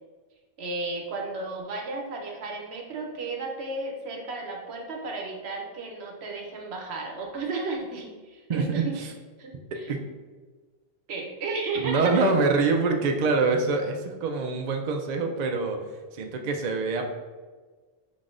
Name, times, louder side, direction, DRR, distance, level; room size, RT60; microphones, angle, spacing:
voice 1, 0.6-9.1 9.4-9.9 11.1-12.2 12.8-12.9, right 3 dB, 75° right, 1 dB, 1.0 m, -34 dB
voice 2, 8.5-9.1 9.9-10.1 11.7-17.0, right 3 dB, 55° right, 4 dB, 0.5 m, -25 dB
4.4 x 3.9 x 2.5 m, 1.4 s
omnidirectional pair, 1.1 m